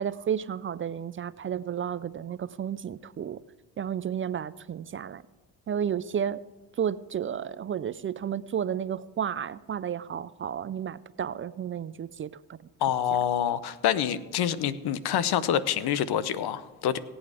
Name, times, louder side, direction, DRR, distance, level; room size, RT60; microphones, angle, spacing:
voice 1, 0.0-3.4 3.8-5.2 5.7-6.4 6.8-12.6, right 8 dB, 35° right, 16 dB, 0.4 m, -32 dB
voice 2, 12.8-17.0, left 10 dB, 75° left, 16 dB, 0.8 m, -26 dB
17.5 x 8.7 x 4.9 m, 1.2 s
cardioid pair, 80°, 39 cm